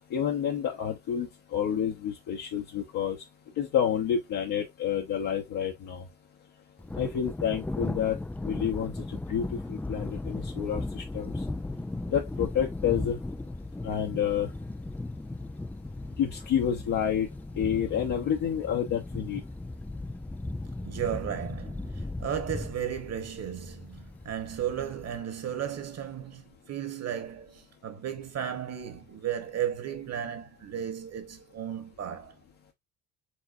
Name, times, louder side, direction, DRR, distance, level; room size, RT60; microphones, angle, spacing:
voice 1, 0.0-3.2 3.6-6.0 6.9-8.2 8.4-11.4 12.1-13.2 13.8-14.5 16.2-17.3 17.6-19.4, left 9 dB, 55° left, 1.1 m, -29 dB
Thunder, 6.8-25.2, left 2 dB, 5° left, 0.4 m, -37 dB
voice 2, 20.8-32.3, right 9 dB, 40° right, 1.6 m, -34 dB
4.8 x 3.8 x 2.7 m
hypercardioid pair, 65°, 39 cm